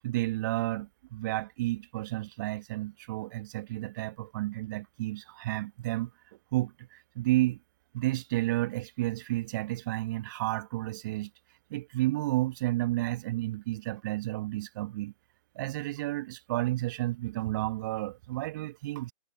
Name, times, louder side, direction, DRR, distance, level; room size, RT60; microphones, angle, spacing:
voice 1, 0.0-6.1 6.5-7.6 7.9-11.3 11.7-15.1 15.5-19.1, right 17 dB, 30° right, 1.2 m, -31 dB
figure-of-eight pair, 135°, 20 cm